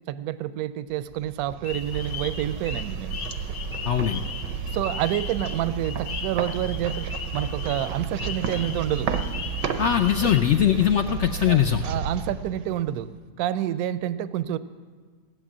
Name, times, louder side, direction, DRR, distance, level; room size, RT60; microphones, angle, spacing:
voice 1, 0.1-3.2 4.7-7.1 7.3-9.1 11.5-13.1 13.4-14.6, right 12 dB, 70° right, 14 dB, 1.0 m, -28 dB
sound 1, 1.1-13.2, right 6 dB, 85° right, 1.4 m, -32 dB
sound 2, 1.6-10.4, left 6 dB, 55° left, 1.1 m, -38 dB
voice 2, 3.8-4.2 9.8-11.8, left 10 dB, 75° left, 7 dB, 0.6 m, -21 dB
17.5 x 9.1 x 7.4 m, 1.5 s
omnidirectional pair, 1.8 m